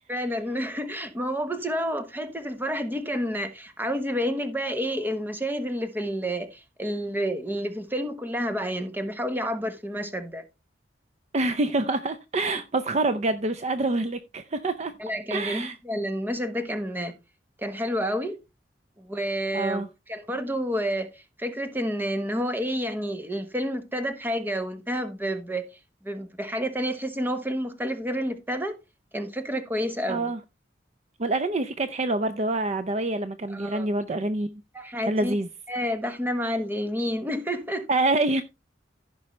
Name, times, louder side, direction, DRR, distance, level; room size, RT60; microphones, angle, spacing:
voice 1, 0.1-10.4 15.0-17.1 17.6-18.4 19.0-25.6 26.0-28.8 29.1-30.3 33.5-33.9 34.7-35.3 35.7-37.9, equal, 10° right, 1.1 m, -29 dB
voice 2, 11.3-14.9 15.3-15.7 19.5-19.9 30.1-30.4 31.2-34.6 35.1-35.5 37.9-38.4, right 2 dB, 40° right, 0.5 m, -26 dB
15.0 x 5.4 x 3.1 m
head